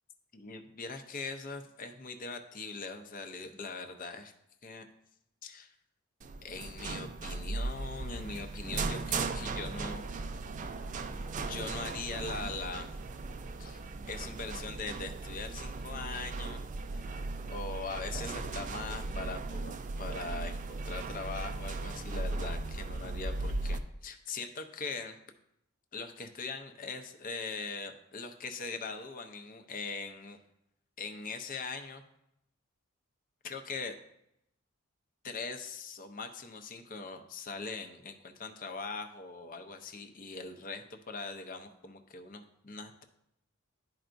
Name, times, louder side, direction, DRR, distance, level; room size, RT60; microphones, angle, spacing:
voice 1, 0.3-4.3 4.6-4.9 5.4-5.7 6.4-10.0 11.5-13.0 13.6-16.6 16.9-17.1 17.5-25.2 25.9-30.4 31.0-32.0 33.4-34.0 35.2-43.0, left 4 dB, 40° left, 6 dB, 0.6 m, -41 dB
sound 1, 6.2-23.8, right 3 dB, 35° right, 0.4 m, -37 dB
11.5 x 4.5 x 2.6 m, 0.79 s
head